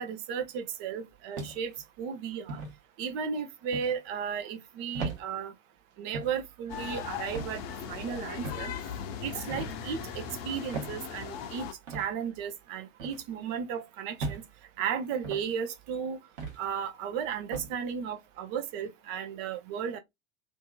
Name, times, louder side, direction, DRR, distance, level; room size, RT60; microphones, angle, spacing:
voice 1, 0.0-2.6 3.0-5.5 6.0-7.6 7.9-8.7 9.2-11.7 11.9-14.4 14.8-16.2 16.6-20.0, right 7 dB, 45° right, 0.7 m, -34 dB
sound 1, 1.3-1.8 2.5-2.7 3.7-4.0 4.9-5.2 6.1-6.4 7.3-7.6 8.4-8.7 9.5-9.8 10.7-11.0 11.9-12.1 13.0-13.2 14.2-14.5 15.2-15.5 16.4-16.6 17.5-17.7, right 3 dB, 60° right, 1.2 m, -37 dB
sound 2, 6.7-11.7, left 7 dB, 45° left, 0.7 m, -38 dB
2.7 x 2.6 x 2.2 m
figure-of-eight pair, 80°, 40 cm